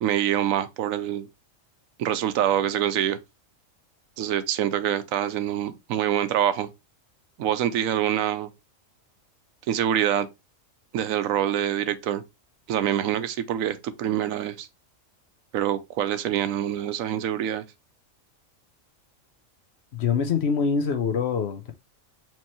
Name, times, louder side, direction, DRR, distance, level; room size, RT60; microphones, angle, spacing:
voice 1, 0.0-1.3 2.0-3.2 4.2-6.7 7.4-8.5 9.7-10.3 10.9-12.2 12.7-14.7 15.5-17.6, right 10 dB, 80° right, 1.0 m, -25 dB
voice 2, 19.9-21.7, left 6 dB, 60° left, 0.9 m, -24 dB
4.6 x 3.0 x 2.9 m
omnidirectional pair, 1.4 m